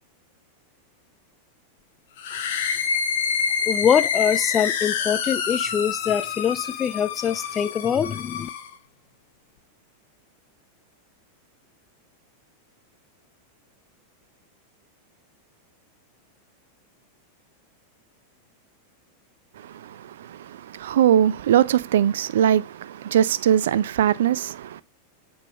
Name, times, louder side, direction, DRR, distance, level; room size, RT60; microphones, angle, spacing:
sound 1, 2.2-8.7, left 7 dB, 55° left, 1.2 m, -27 dB
voice 1, 3.7-8.5, left 8 dB, 25° left, 0.5 m, -23 dB
voice 2, 19.6-24.8, right 10 dB, 60° right, 0.4 m, -21 dB
7.4 x 5.5 x 3.1 m
figure-of-eight pair, 90°, 0 cm